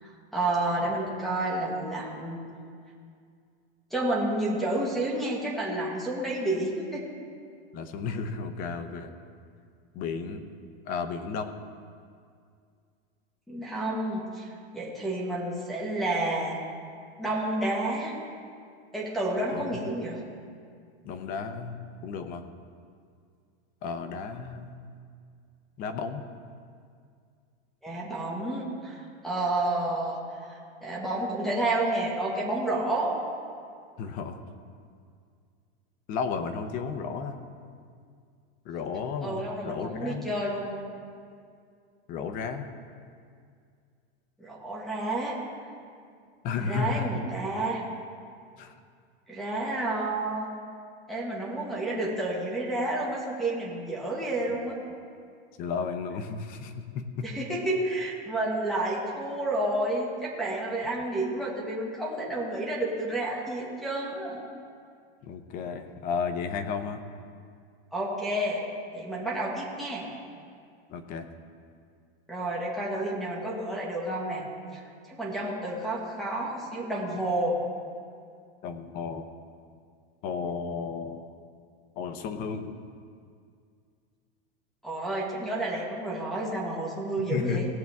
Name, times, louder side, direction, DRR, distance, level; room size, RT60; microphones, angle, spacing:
voice 1, 0.0-2.4 3.9-7.1 13.5-14.5 14.7-16.6 17.2-18.1 18.9-20.2 27.8-29.0 29.2-30.2 30.5-33.1 39.2-40.8 44.4-45.3 46.6-47.8 49.3-50.5 51.1-54.8 57.2-64.4 67.9-68.7 68.9-70.1 72.3-74.4 74.7-74.8 75.1-77.6 84.8-87.7, right 1 dB, ahead, -4 dB, 1.7 m, -30 dB
voice 2, 7.7-9.1 9.9-10.4 10.9-11.5 19.5-19.8 21.0-21.8 22.0-22.5 23.8-24.8 25.8-26.2 34.0-34.4 36.1-37.4 38.6-40.3 42.1-42.7 46.4-47.1 48.6-48.7 55.6-57.3 65.2-67.0 70.9-71.3 78.6-79.3 80.2-81.2 82.0-82.8 87.3-87.7, left 5 dB, 25° left, 8 dB, 0.7 m, -33 dB
18.5 x 7.4 x 3.5 m, 2.2 s
supercardioid pair, 165°, 33 cm